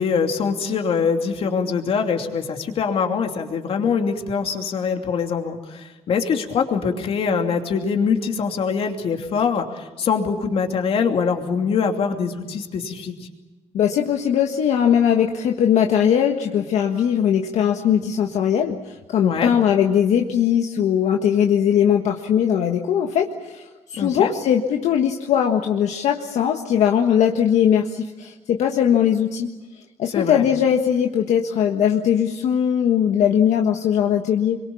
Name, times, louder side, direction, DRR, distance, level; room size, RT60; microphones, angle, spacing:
voice 1, 0.0-13.3 19.2-19.5 24.0-24.3 30.1-30.4, left 6 dB, 55° left, 4 dB, 2.8 m, -23 dB
voice 2, 13.7-29.5 30.0-34.6, left 9 dB, 75° left, 3 dB, 1.6 m, -20 dB
26.5 x 23.5 x 7.1 m, 1.2 s
cardioid pair, 150°, 12 cm